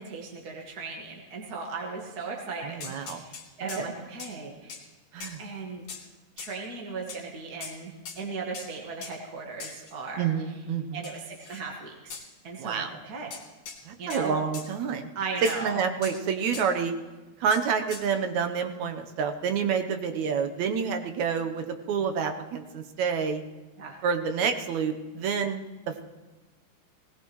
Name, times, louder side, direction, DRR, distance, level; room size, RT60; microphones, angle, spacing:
voice 1, 0.0-3.3 3.6-4.8 5.4-5.8 6.4-10.3 10.9-13.3 14.0-14.4 15.1-15.8 23.8-24.0, right 4 dB, 40° right, -1 dB, 1.7 m, -37 dB
voice 2, 2.6-3.2 3.8-3.9 5.1-5.4 10.2-11.0 12.6-12.9 13.9-15.1 15.6-16.9 17.4-23.4 24.0-26.0, right 6 dB, 70° right, 6 dB, 2.2 m, -28 dB
sound 1, 2.8-3.9 4.2-4.4 4.7-4.8 5.2-5.4 5.9-6.0 6.4-6.6 7.1-7.2 7.6-7.8 8.1-8.2 8.5-8.7 9.0-9.1 9.6-9.9 11.0-11.7 12.1-12.3 13.3-13.8 14.1-14.3 14.5-14.7 15.5-15.6 16.0-16.2 16.5-16.7 17.5-17.6 17.9-18.0, left 6 dB, 65° left, 3.1 m, -41 dB
19.5 x 19.0 x 3.1 m, 1.2 s
omnidirectional pair, 3.6 m